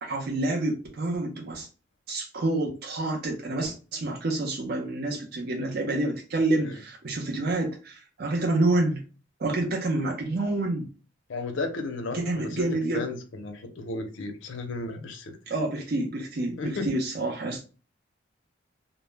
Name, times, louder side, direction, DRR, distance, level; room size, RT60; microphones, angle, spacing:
voice 1, 0.0-1.7 2.1-9.0 9.4-10.9 12.1-13.1 15.5-17.6, right 2 dB, 55° right, 0 dB, 0.5 m, -28 dB
voice 2, 11.3-12.7 12.9-15.4 16.6-16.9, left 3 dB, 75° left, 5 dB, 0.5 m, -34 dB
2.0 x 2.0 x 3.2 m, 0.35 s
head